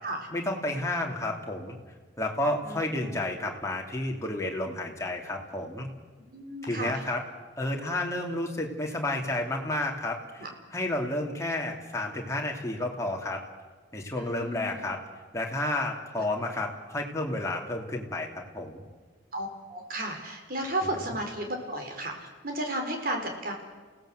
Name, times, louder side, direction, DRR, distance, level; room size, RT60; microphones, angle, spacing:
voice 1, 0.3-1.8 2.2-5.9 6.6-7.2 7.6-10.4 10.7-13.4 13.9-15.0 15.3-18.3 18.5-18.8, left 1 dB, 15° left, 0 dB, 3.0 m, -31 dB
voice 2, 2.6-3.3 6.3-7.0 10.4-10.5 14.2-14.8 16.1-16.2 19.3-23.5, right 1 dB, 50° right, 3 dB, 4.4 m, -34 dB
29.0 x 17.5 x 7.9 m, 1.4 s
head